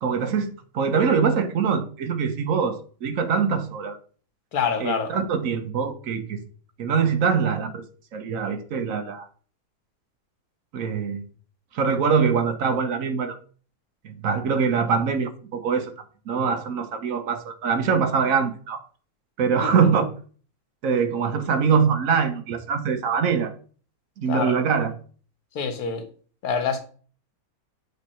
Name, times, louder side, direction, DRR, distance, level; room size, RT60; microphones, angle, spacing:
voice 1, 0.0-4.0 4.8-6.4 6.8-7.8 8.1-9.3 10.7-11.2 11.7-13.4 14.0-15.9 16.3-18.8 19.4-20.1 20.8-23.5 24.2-24.9, right 6 dB, 65° right, 1.1 m, -23 dB
voice 2, 4.5-5.1 19.6-19.9 24.3-24.6 25.5-26.0 26.4-26.8, left 6 dB, 80° left, 1.4 m, -26 dB
8.2 x 3.2 x 4.2 m
omnidirectional pair, 1.6 m